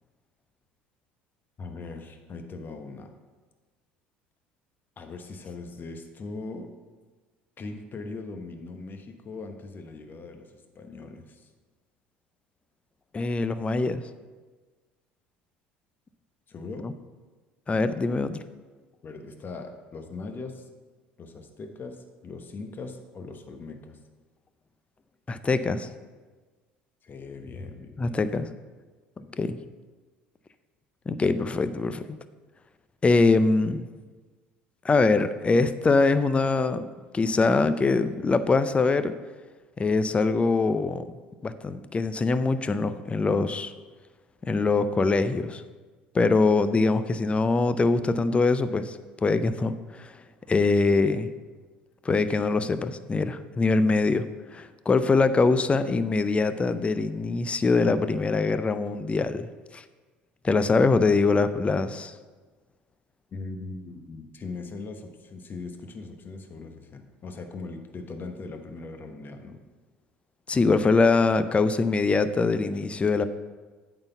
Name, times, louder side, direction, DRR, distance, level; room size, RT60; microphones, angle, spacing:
voice 1, 1.6-3.1 5.0-6.7 7.6-11.5 16.5-16.9 19.0-20.7 21.2-24.0 27.0-28.4 29.2-29.6 63.3-69.6, left 3 dB, 40° left, 5 dB, 1.1 m, -40 dB
voice 2, 13.1-14.0 16.8-16.9 17.7-18.4 25.3-25.9 28.0-28.5 29.3-29.6 31.1-32.2 33.0-33.9 34.8-36.9 37.1-39.1 39.8-41.1 41.4-43.7 44.4-45.6 46.1-50.1 50.5-51.3 52.0-54.3 54.5-59.8 60.4-62.1 70.5-73.3, left 3 dB, 20° left, 12 dB, 0.5 m, -23 dB
8.8 x 4.0 x 6.9 m, 1.4 s
hypercardioid pair, 70°, 5 cm